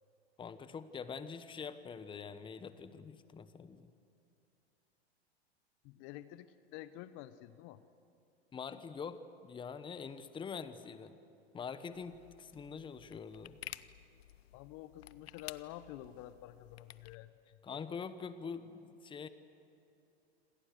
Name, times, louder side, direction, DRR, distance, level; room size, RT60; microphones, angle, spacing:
voice 1, 0.4-3.9 8.5-11.1 11.5-13.6 17.6-19.3, left 6 dB, 15° left, 13 dB, 1.1 m, -44 dB
voice 2, 5.8-7.8 14.5-17.6, left 14 dB, 40° left, 14 dB, 1.0 m, -49 dB
sound 1, 11.9-17.2, left 12 dB, 70° left, 0.9 m, -53 dB
27.0 x 27.0 x 6.7 m, 2.7 s
hypercardioid pair, 100°, 32 cm